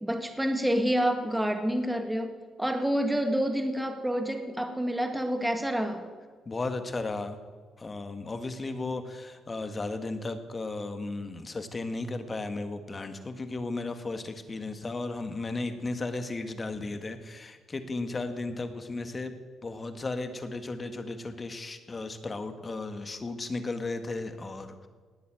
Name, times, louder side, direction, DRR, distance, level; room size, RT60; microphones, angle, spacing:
voice 1, 0.0-2.3 2.6-6.1, equal, 5° right, 6 dB, 1.8 m, -28 dB
voice 2, 6.5-7.4 7.8-19.3 19.6-24.9, left 3 dB, 30° left, 9 dB, 1.7 m, -35 dB
19.5 x 8.4 x 7.8 m, 1.5 s
cardioid pair, 90°, 0 cm